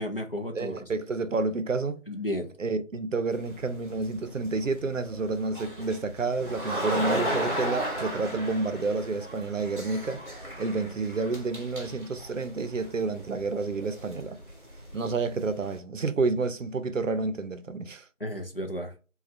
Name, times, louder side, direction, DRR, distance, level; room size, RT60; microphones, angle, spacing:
voice 1, 0.0-0.9 2.1-2.5 18.2-18.9, left 1 dB, 50° left, 0.5 m, -33 dB
voice 2, 0.5-2.0 2.6-14.4 14.9-18.0, right 3 dB, 75° right, 0.6 m, -30 dB
sound 1, 3.3-15.8, equal, 40° right, 0.7 m, -36 dB
3.1 x 2.3 x 2.5 m
figure-of-eight pair, 175°, 39 cm